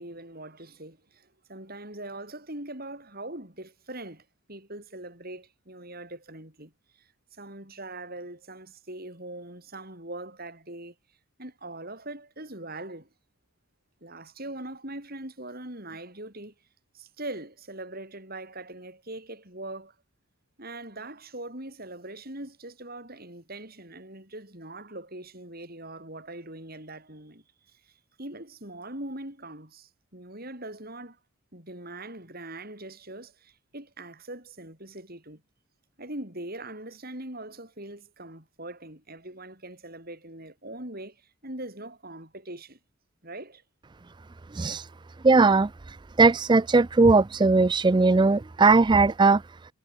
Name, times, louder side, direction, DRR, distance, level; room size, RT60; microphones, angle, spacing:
voice 1, 0.0-10.9 11.4-13.1 14.0-16.5 16.9-19.9 20.6-31.2 31.5-35.4 36.0-42.8 43.2-43.6, right 1 dB, 45° right, 7.7 m, -41 dB
voice 2, 44.5-44.9 45.2-49.4, right 3 dB, 20° right, 0.3 m, -19 dB
head